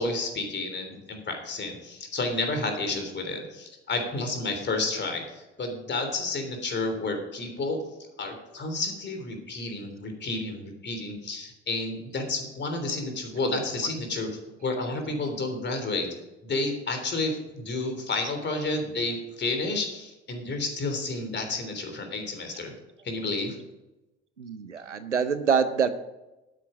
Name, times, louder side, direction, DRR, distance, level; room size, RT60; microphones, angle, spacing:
voice 1, 0.0-7.8 8.2-16.1 16.4-22.7 23.0-23.5, left 2 dB, 30° left, 5 dB, 3.4 m, -31 dB
voice 2, 24.4-25.9, right 6 dB, 90° right, 12 dB, 0.7 m, -25 dB
12.5 x 9.2 x 5.2 m, 0.99 s
figure-of-eight pair, 60°, 35 cm